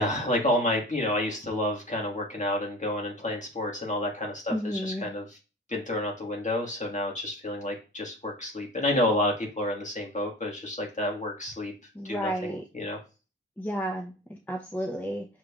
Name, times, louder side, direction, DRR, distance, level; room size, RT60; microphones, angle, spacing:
voice 1, 0.0-5.4 5.7-11.7 12.0-13.0, left 1 dB, 35° left, 0 dB, 1.7 m, -29 dB
voice 2, 4.5-5.1 11.9-12.6 13.6-15.3, equal, 10° left, 1 dB, 0.7 m, -32 dB
6.2 x 3.3 x 2.4 m, 0.31 s
wide cardioid pair, 55°, 21 cm